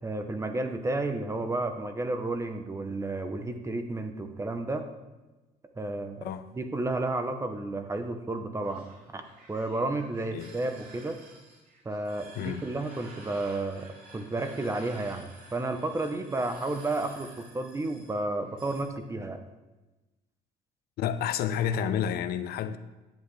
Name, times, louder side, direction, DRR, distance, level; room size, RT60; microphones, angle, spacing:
voice 1, 0.0-4.9 5.8-8.9 9.1-9.2 9.5-11.2 11.8-19.4, right 2 dB, 15° right, 0.8 m, -32 dB
voice 2, 6.2-6.5 10.3-10.5 12.4-12.7 21.0-22.8, left 9 dB, 70° left, 0.5 m, -30 dB
sound 1, 8.6-18.9, right 2 dB, 60° right, 2.4 m, -51 dB
10.5 x 8.1 x 3.2 m
cardioid pair, 110°, 17 cm